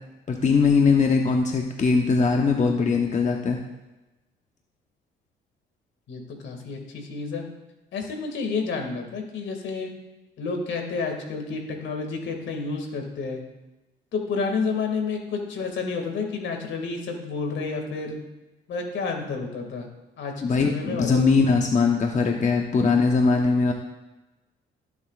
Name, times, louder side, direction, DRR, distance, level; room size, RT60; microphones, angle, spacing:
voice 1, 0.3-3.6 20.4-23.7, left 4 dB, 40° left, 2 dB, 1.0 m, -21 dB
voice 2, 6.1-7.4 7.9-9.9 10.4-13.4 14.1-18.2 18.7-19.9 20.2-20.3 20.6-21.2, left 4 dB, 70° left, 3 dB, 2.2 m, -30 dB
16.0 x 7.3 x 2.5 m, 1.1 s
supercardioid pair, 75°, 20 cm